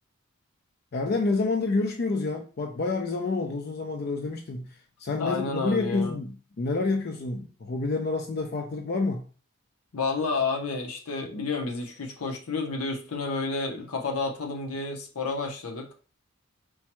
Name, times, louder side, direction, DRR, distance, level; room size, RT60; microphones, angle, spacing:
voice 1, 0.9-9.2, left 3 dB, 45° left, 3 dB, 0.4 m, -28 dB
voice 2, 5.2-6.1 9.9-15.9, left 3 dB, 85° left, 2 dB, 0.8 m, -30 dB
4.5 x 2.2 x 2.9 m, 0.38 s
head